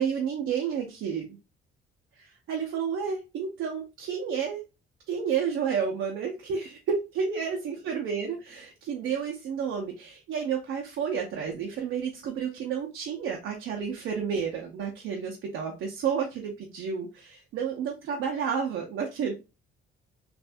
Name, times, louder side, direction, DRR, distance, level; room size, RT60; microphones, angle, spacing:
voice 1, 0.0-1.4 2.2-4.6 5.1-19.3, right 7 dB, 80° right, 1 dB, 0.7 m, -31 dB
3.4 x 2.6 x 2.5 m, 0.28 s
cardioid pair, 90°, 20 cm